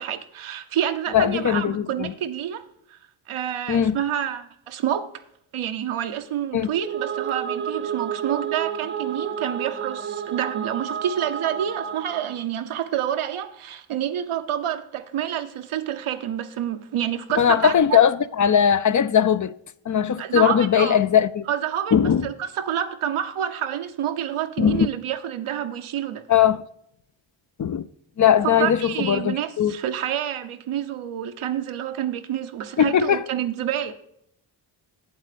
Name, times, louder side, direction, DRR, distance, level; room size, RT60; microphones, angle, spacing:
voice 1, 0.0-3.0 3.3-5.1 5.5-18.0 20.2-21.0 21.5-26.2 28.4-34.0, right 10 dB, 85° right, 1.0 m, -28 dB
voice 2, 1.1-2.1 3.7-4.0 6.5-6.7 17.4-19.5 19.9-21.5 21.9-22.2 24.6-24.9 26.3-26.6 27.6-27.8 28.2-29.8 32.8-33.2, left 8 dB, 40° left, 0.5 m, -19 dB
sound 1, 6.7-12.4, right 8 dB, 25° right, 0.6 m, -31 dB
8.3 x 8.1 x 5.0 m
cardioid pair, 85°, 48 cm